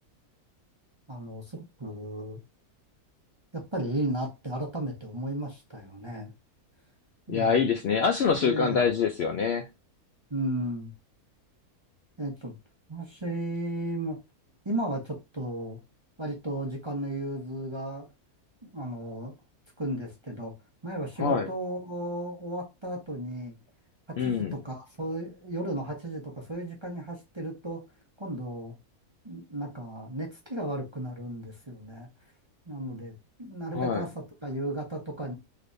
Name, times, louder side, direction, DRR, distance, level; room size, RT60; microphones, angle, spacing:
voice 1, 1.1-2.4 3.5-6.3 7.3-7.6 8.4-8.8 10.3-10.9 12.2-12.6 12.9-14.2 14.6-15.8 16.2-18.1 18.6-19.3 19.8-20.5 20.8-23.5 24.1-27.8 28.2-28.7 29.2-32.1 32.7-35.3, right 1 dB, 25° right, 0.7 m, -34 dB
voice 2, 7.3-9.7 21.2-21.5 24.2-24.6 33.7-34.1, left 6 dB, 90° left, 0.5 m, -25 dB
3.3 x 3.0 x 2.6 m
omnidirectional pair, 1.6 m